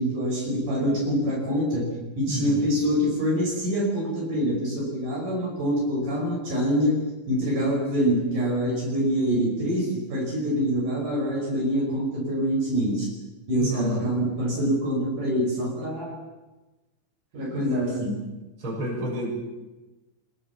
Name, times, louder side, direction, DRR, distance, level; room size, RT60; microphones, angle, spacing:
voice 1, 0.0-7.0 7.3-13.1 13.5-16.2 17.3-18.2, equal, 60° right, -2 dB, 7.1 m, -25 dB
voice 2, 2.3-2.6 13.6-14.0 18.6-19.4, equal, 30° right, -2 dB, 7.5 m, -30 dB
24.5 x 21.5 x 7.2 m, 1.1 s
omnidirectional pair, 4.3 m